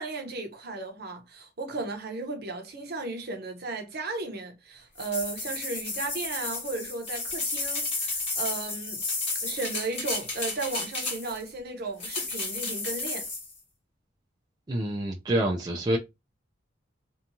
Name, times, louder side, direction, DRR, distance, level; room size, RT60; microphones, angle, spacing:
voice 1, 0.0-9.0 9.4-13.2, right 3 dB, 55° right, 0.7 m, -35 dB
sound 1, 5.0-11.5 12.0-13.5, left 3 dB, 30° left, 1.3 m, -32 dB
voice 2, 14.7-16.0, right 1 dB, 20° right, 0.3 m, -27 dB
2.8 x 2.3 x 2.6 m
head